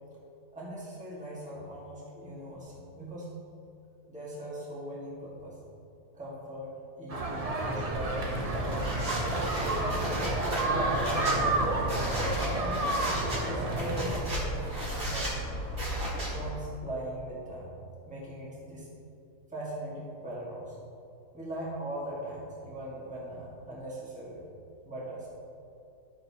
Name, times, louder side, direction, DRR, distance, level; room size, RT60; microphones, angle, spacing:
voice 1, 0.5-3.3 4.1-5.6 6.1-8.9 9.5-10.1 10.6-11.8 12.6-13.0 13.4-15.4 16.3-17.7 18.0-18.9 19.5-20.8 21.3-24.5 24.8-25.3, right 1 dB, 5° right, -6 dB, 1.4 m, -40 dB
sound 1, 7.1-14.2, right 2 dB, 55° right, 0.4 m, -30 dB
sound 2, 7.9-16.5, equal, 35° right, 1.9 m, -34 dB
11.0 x 6.8 x 2.8 m, 2.7 s
omnidirectional pair, 1.7 m